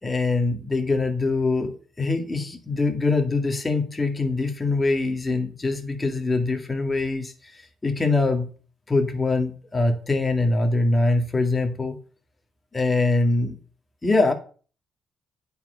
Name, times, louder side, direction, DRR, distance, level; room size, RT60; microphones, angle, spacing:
voice 1, 0.0-8.5 8.9-12.0 12.7-13.6 14.0-14.3, left 3 dB, 20° left, 4 dB, 2.1 m, -23 dB
9.3 x 4.7 x 7.7 m, 0.40 s
cardioid pair, 90°, 0 cm